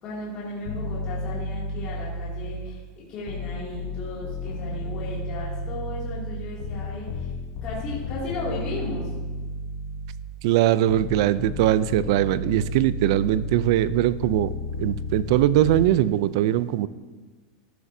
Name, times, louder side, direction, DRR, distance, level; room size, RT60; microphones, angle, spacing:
voice 1, 0.0-2.8 3.1-7.3 7.6-9.1, left 2 dB, 35° left, -6 dB, 2.6 m, -35 dB
sound 1, 0.6-2.8 3.3-10.4 10.9-15.9, left 1 dB, 55° left, 1.0 m, -33 dB
voice 2, 10.4-14.5 14.8-16.9, right 13 dB, 60° right, 17 dB, 0.4 m, -21 dB
12.5 x 11.0 x 2.7 m, 1.3 s
supercardioid pair, 155°, 3 cm